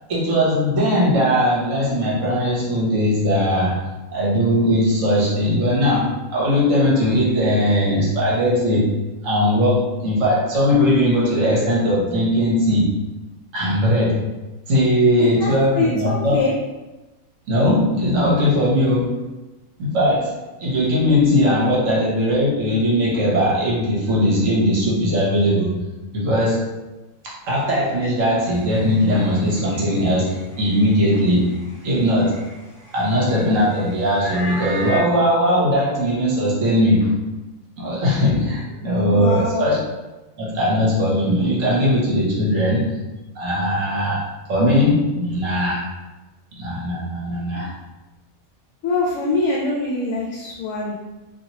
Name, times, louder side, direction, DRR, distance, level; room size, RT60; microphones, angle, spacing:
voice 1, 0.1-3.8 4.1-8.9 9.2-12.9 13.5-14.2 14.7-16.4 17.5-19.2 19.8-25.8 26.1-26.7 27.2-32.4 32.9-37.2 37.8-39.8 40.4-43.0 43.3-45.9 46.6-47.7, equal, 65° right, -5 dB, 1.3 m, -19 dB
voice 2, 15.2-16.5 21.8-21.9 39.1-39.7 48.8-51.0, left 3 dB, 70° left, -3 dB, 0.9 m, -24 dB
sound 1, 28.4-35.0, equal, 45° left, 1.5 m, -37 dB
2.9 x 2.8 x 2.8 m, 1.1 s
omnidirectional pair, 1.5 m